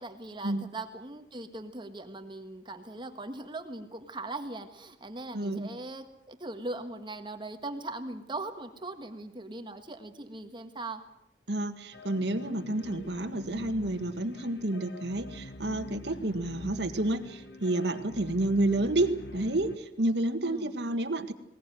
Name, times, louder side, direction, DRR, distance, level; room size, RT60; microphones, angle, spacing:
voice 1, 0.0-11.0 20.4-20.8, right 2 dB, 25° right, 7 dB, 1.6 m, -40 dB
voice 2, 5.3-5.7 11.5-21.3, right 1 dB, 70° right, 7 dB, 1.8 m, -30 dB
sound 1, 11.9-19.8, equal, 75° left, 1.8 m, -45 dB
20.0 x 19.5 x 9.3 m, 0.84 s
head